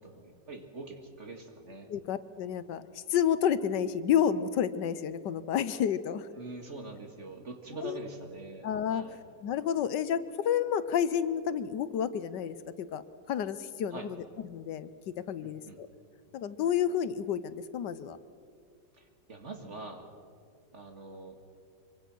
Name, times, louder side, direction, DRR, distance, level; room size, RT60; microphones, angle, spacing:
voice 1, 0.0-1.9 6.3-9.2 13.9-14.1 15.4-15.8 18.9-20.1 20.7-21.4, right 2 dB, 40° right, 4 dB, 2.2 m, -44 dB
voice 2, 1.9-6.3 7.8-8.1 8.6-9.0 9.4-13.0 13.3-14.2 14.5-15.9 16.3-18.2, left 9 dB, 75° left, 14 dB, 1.4 m, -30 dB
25.0 x 24.0 x 6.2 m, 2.2 s
omnidirectional pair, 1.9 m